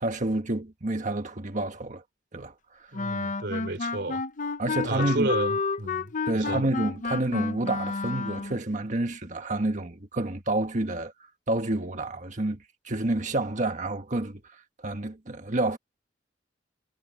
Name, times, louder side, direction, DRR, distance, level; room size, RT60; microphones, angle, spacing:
voice 1, 0.0-2.0 2.3-2.9 4.6-5.3 6.3-11.1 11.5-12.6 12.8-15.8, right 2 dB, 45° right, 1.5 m, -29 dB
Wind instrument woodwind instrument, 2.9-8.6, left 4 dB, 45° left, 0.8 m, -30 dB
voice 2, 2.9-4.2 4.8-6.6, right 2 dB, 70° right, 3.3 m, -32 dB
head